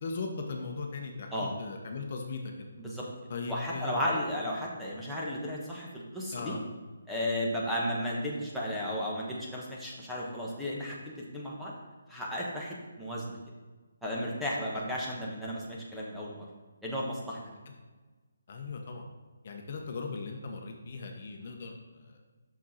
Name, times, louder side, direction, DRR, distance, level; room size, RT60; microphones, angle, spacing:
voice 1, 0.0-2.7 3.3-4.0 6.3-6.6 17.4-17.6 18.5-19.1 19.4-22.2, left 4 dB, 45° left, 2 dB, 1.0 m, -38 dB
voice 2, 3.5-6.5 7.1-11.7 12.1-13.4 14.0-16.5 16.8-17.4, equal, ahead, -6 dB, 1.3 m, -34 dB
6.1 x 6.1 x 4.2 m, 1.3 s
figure-of-eight pair, 155°, 0 cm